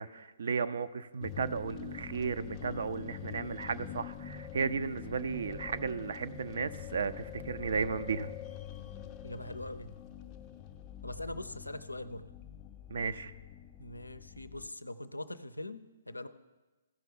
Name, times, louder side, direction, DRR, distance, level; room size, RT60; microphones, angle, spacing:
voice 1, 0.0-8.3 12.9-13.3, right 5 dB, 55° right, 11 dB, 0.4 m, -34 dB
sound 1, 1.2-14.7, left 9 dB, 20° left, 0.5 m, -45 dB
voice 2, 9.2-9.9 11.0-12.3 13.8-16.3, left 1 dB, 80° left, 14 dB, 0.5 m, -42 dB
15.0 x 5.7 x 3.8 m, 1.2 s
figure-of-eight pair, 125°, 0 cm